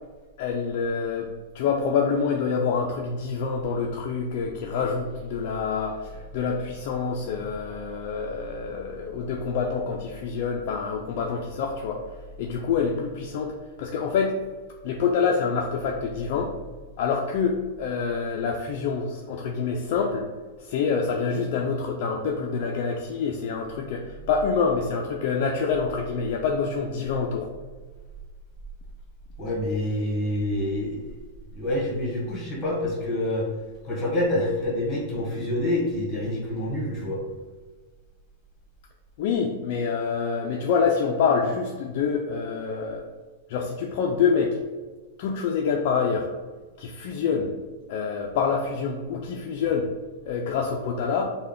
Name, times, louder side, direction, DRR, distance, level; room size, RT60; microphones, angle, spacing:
voice 1, 0.4-1.3 1.5-12.0 12.4-14.4 14.8-16.5 17.0-20.3 20.6-27.5 39.2-43.1 43.5-44.6 45.2-46.3 46.8-47.5 47.9-49.9 50.2-51.2, left 5 dB, 55° left, 1 dB, 0.3 m, -26 dB
voice 2, 29.4-31.0 31.5-33.5 33.8-37.2, left 1 dB, 25° left, -3 dB, 1.2 m, -27 dB
3.3 x 2.2 x 3.6 m, 1.4 s
hypercardioid pair, 140°, 0 cm